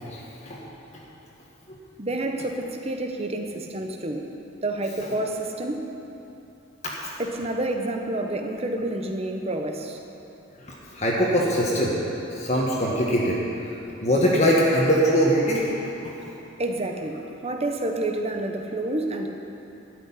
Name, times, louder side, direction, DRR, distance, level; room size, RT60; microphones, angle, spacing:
voice 1, 0.1-0.6 0.9-1.0 1.7-1.8 10.7-12.0 12.3-13.4 14.0-15.7 16.0-16.1, equal, 35° left, -4 dB, 1.5 m, -22 dB
voice 2, 2.0-4.3 4.6-5.9 7.2-10.0 16.6-19.3, right 1 dB, 30° right, 4 dB, 1.0 m, -29 dB
12.5 x 6.6 x 9.8 m, 3.0 s
head